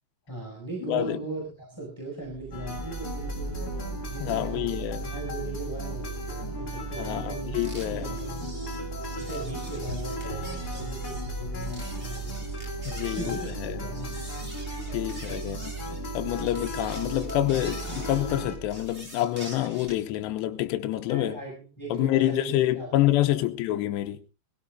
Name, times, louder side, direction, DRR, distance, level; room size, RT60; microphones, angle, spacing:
voice 1, 0.3-7.5 7.9-8.6 9.2-12.4 13.0-13.5 13.8-14.3 14.9-15.3 21.0-23.5, right 2 dB, 5° left, 6.1 m, -39 dB
voice 2, 0.8-1.2 4.2-5.1 7.0-8.2 12.9-13.8 14.9-15.7 16.1-21.4 21.9-24.2, left 14 dB, 80° left, 3.1 m, -27 dB
Mechanical fan, 2.2-19.1, right 7 dB, 85° right, 6.8 m, -38 dB
sound 1, 2.5-18.6, left 3 dB, 25° left, 3.0 m, -38 dB
sound 2, 7.5-20.1, right 1 dB, 15° right, 3.2 m, -45 dB
21.5 x 17.0 x 2.5 m
omnidirectional pair, 5.1 m